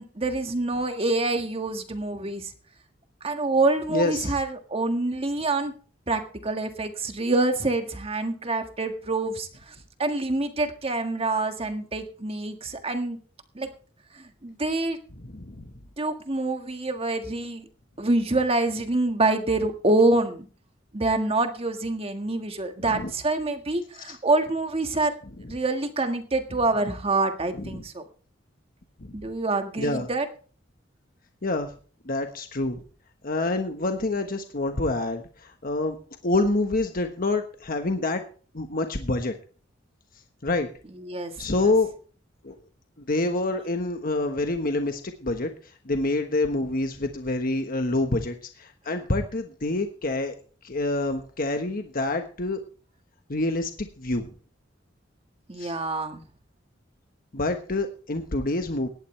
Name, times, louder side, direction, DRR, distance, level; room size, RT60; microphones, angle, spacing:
voice 1, 0.0-2.5 3.2-5.7 6.1-9.7 10.0-13.2 13.5-13.7 14.1-15.0 16.0-17.6 18.0-20.5 20.9-25.1 25.5-28.0 29.1-30.2 41.0-41.7 55.5-56.2, right 2 dB, 30° right, 6 dB, 1.6 m, -26 dB
voice 2, 3.9-4.3 15.2-15.7 22.9-23.1 25.4-25.5 27.5-27.8 29.0-29.1 29.8-30.1 31.4-31.7 32.0-32.8 33.2-36.0 36.2-38.2 38.5-39.3 40.4-40.7 41.4-41.9 42.4-42.6 43.1-45.5 45.8-50.3 50.6-52.6 53.3-54.3 55.6-55.7 57.3-58.9, left 2 dB, 50° left, 5 dB, 1.3 m, -27 dB
18.0 x 11.5 x 3.3 m, 0.40 s
head